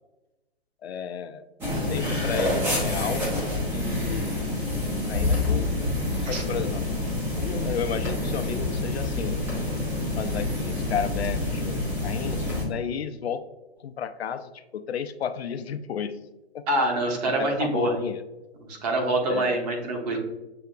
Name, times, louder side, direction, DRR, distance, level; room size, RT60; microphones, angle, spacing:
voice 1, 0.8-1.4 1.7-4.5 5.1-5.9 6.2-6.8 7.4-9.5 10.1-13.4 13.8-16.2 16.5-16.6 17.4-18.2 19.3-19.7, left 7 dB, 70° left, 10 dB, 0.5 m, -33 dB
sound 1, 1.6-12.7, left 2 dB, 5° right, 0.4 m, -27 dB
voice 2, 6.2-6.7 16.7-17.9 18.6-20.2, right 1 dB, 35° right, 1 dB, 1.2 m, -26 dB
6.8 x 2.8 x 2.4 m, 1.0 s
hypercardioid pair, 135°, 33 cm